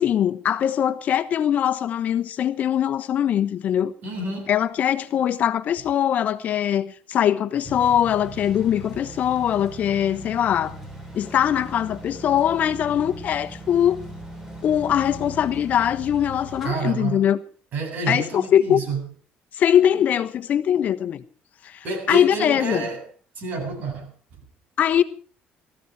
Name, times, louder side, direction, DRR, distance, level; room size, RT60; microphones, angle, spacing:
voice 1, 0.0-3.9 4.5-10.8 11.1-14.0 14.6-17.4 18.1-18.8 19.5-21.2 21.6-22.8 24.8-25.0, left 10 dB, 50° left, 1.2 m, -22 dB
voice 2, 4.0-4.5 16.6-17.3 17.7-19.1 21.8-23.1 23.3-24.1, right 3 dB, 60° right, 8.0 m, -29 dB
sound 1, 7.6-16.7, right 1 dB, 10° right, 5.9 m, -39 dB
20.0 x 14.5 x 4.8 m
cardioid pair, 130°, 3 cm